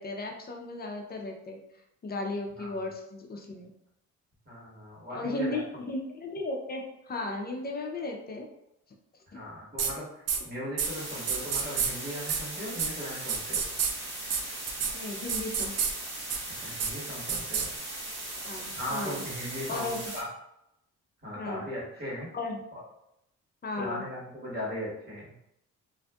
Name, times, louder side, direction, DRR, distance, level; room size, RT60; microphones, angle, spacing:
voice 1, 0.0-1.6 2.0-3.7 5.1-8.5 14.9-15.8 18.4-19.2 19.7-20.0 21.3-21.7 22.3-22.6 23.6-24.1, left 2 dB, 30° left, 2 dB, 0.5 m, -35 dB
voice 2, 4.4-5.6 9.3-13.6 16.6-17.7 18.7-20.3 21.2-22.3 22.7-22.8 23.8-25.4, left 1 dB, 30° right, -6 dB, 1.4 m, -38 dB
sound 1, 9.8-9.9 10.3-10.4 10.8-10.9 11.3-11.9 12.3-12.4 12.8-12.9 13.3-13.9 14.3-14.4 14.7-14.9 15.3-15.9 16.3-16.4 16.8-16.9 17.3-17.7, right 7 dB, 55° right, 0.5 m, -28 dB
sound 2, 10.8-20.2, right 1 dB, 75° right, 1.3 m, -39 dB
2.6 x 2.5 x 2.2 m, 0.82 s
cardioid pair, 90°, 30 cm